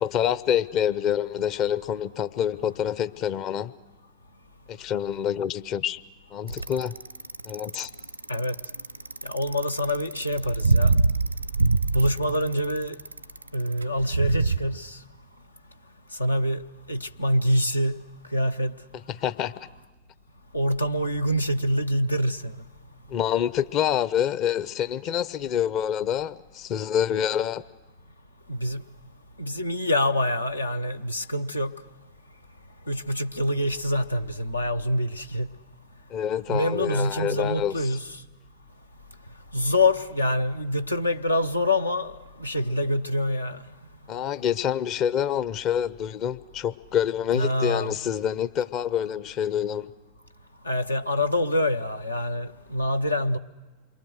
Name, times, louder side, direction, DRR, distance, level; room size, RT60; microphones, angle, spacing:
voice 1, 0.0-3.7 4.7-6.0 6.3-6.9 7.4-7.9 19.1-19.7 23.1-27.6 36.1-38.0 44.1-49.9, left 9 dB, 40° left, 0.7 m, -27 dB
Bicycle, 6.5-14.6, right 3 dB, 90° right, 0.7 m, -24 dB
voice 2, 9.2-11.0 11.9-13.0 13.5-15.0 16.2-16.6 16.9-18.0 18.3-18.8 20.5-22.5 28.5-28.8 29.4-31.7 32.9-35.5 36.5-38.0 39.5-42.1 42.4-43.6 47.3-47.9 50.6-53.4, left 1 dB, 85° left, 0.8 m, -25 dB
28.0 x 23.0 x 6.4 m
figure-of-eight pair, 90°, 0 cm